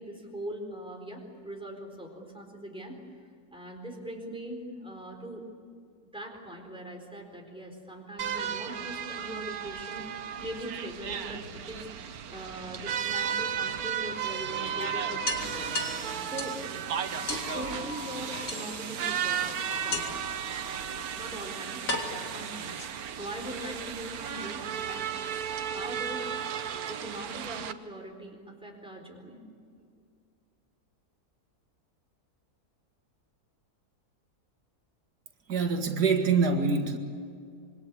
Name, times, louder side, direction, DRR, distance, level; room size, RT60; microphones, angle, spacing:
voice 1, 0.0-3.0 3.5-5.4 6.1-16.6 17.2-20.3 21.1-25.1 25.7-26.3 26.9-29.4, right 1 dB, 5° right, 1 dB, 4.1 m, -41 dB
sound 1, 8.2-27.7, right 8 dB, 70° right, 1.4 m, -34 dB
sound 2, 11.2-12.3 13.8-13.9 14.3-14.4 14.7-14.8 15.3-16.7 17.3-17.5 18.5-19.0 19.9-20.3 21.2-21.3 21.9-23.2, left 2 dB, 55° left, 2.9 m, -35 dB
sound 3, 14.5-21.1, left 4 dB, 35° left, 1.9 m, -44 dB
voice 2, 35.5-37.0, right 5 dB, 90° right, 4 dB, 2.4 m, -25 dB
26.0 x 23.0 x 8.5 m, 2.2 s
omnidirectional pair, 1.7 m